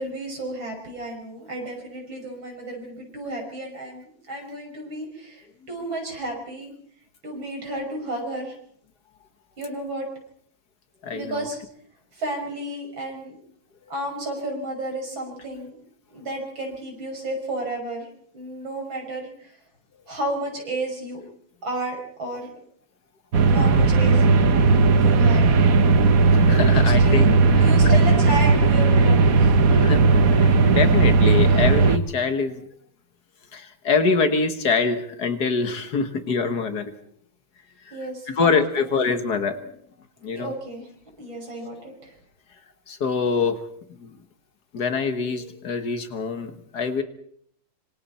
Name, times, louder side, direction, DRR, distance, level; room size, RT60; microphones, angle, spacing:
voice 1, 0.0-6.7 7.2-8.6 9.6-10.1 11.1-11.6 12.1-13.3 13.9-15.8 16.1-18.1 18.3-19.5 20.1-21.2 21.6-22.5 23.5-24.2 25.0-25.5 26.7-27.3 27.6-29.6 37.9-38.9 40.2-40.9 41.2-42.2, right 1 dB, 90° right, 1 dB, 6.9 m, -32 dB
voice 2, 11.0-11.4 26.3-27.3 27.6-28.0 29.7-32.6 33.5-36.9 37.9-38.0 38.3-39.6 40.2-40.5 42.9-43.6 44.0-44.1 44.7-47.0, left 4 dB, 55° left, 8 dB, 2.0 m, -24 dB
sound 1, 23.3-32.0, right 4 dB, 50° right, 1.4 m, -16 dB
26.0 x 25.5 x 4.3 m, 0.63 s
omnidirectional pair, 2.1 m